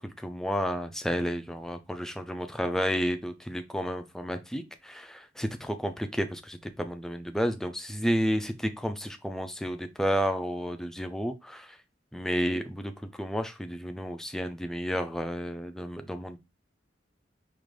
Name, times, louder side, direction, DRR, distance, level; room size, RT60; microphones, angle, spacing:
voice 1, 0.2-11.8 12.1-16.4, equal, 5° left, 7 dB, 0.4 m, -31 dB
5.1 x 2.5 x 3.2 m, 0.24 s
head